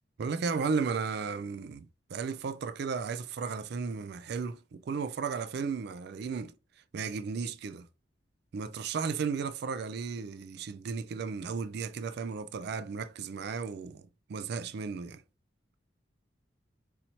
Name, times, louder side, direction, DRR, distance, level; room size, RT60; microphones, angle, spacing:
voice 1, 0.2-6.5 6.9-7.9 8.5-14.0 14.3-15.2, right 5 dB, 60° right, 0.4 m, -34 dB
4.1 x 2.9 x 2.8 m
head